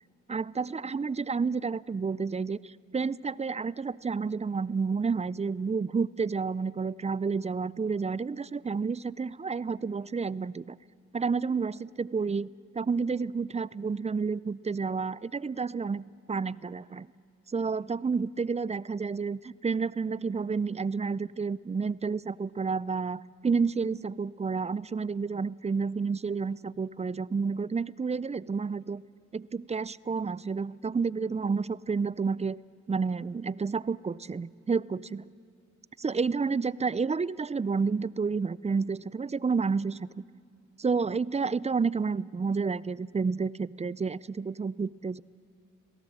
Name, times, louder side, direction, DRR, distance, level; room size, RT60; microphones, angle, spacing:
voice 1, 0.3-10.8 11.1-12.5 12.7-17.1 17.5-29.0 29.3-32.6 32.9-35.3 36.0-40.1 40.8-45.2, right 5 dB, 20° right, 21 dB, 0.4 m, -30 dB
22.0 x 17.5 x 7.7 m, 2.2 s
supercardioid pair, 45°, 31 cm